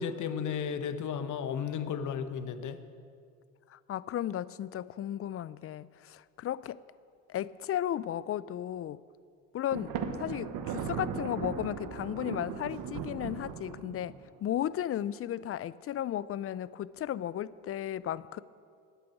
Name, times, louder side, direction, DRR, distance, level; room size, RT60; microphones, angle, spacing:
voice 1, 0.0-2.8, left 7 dB, 55° left, 10 dB, 1.1 m, -34 dB
voice 2, 3.7-6.8 7.3-9.0 9.5-9.9 10.2-18.4, left 11 dB, 40° left, 19 dB, 0.5 m, -35 dB
Thunder, 9.7-14.3, right 7 dB, 65° right, 1.1 m, -37 dB
10.5 x 9.0 x 8.4 m, 2.3 s
hypercardioid pair, 60°, 36 cm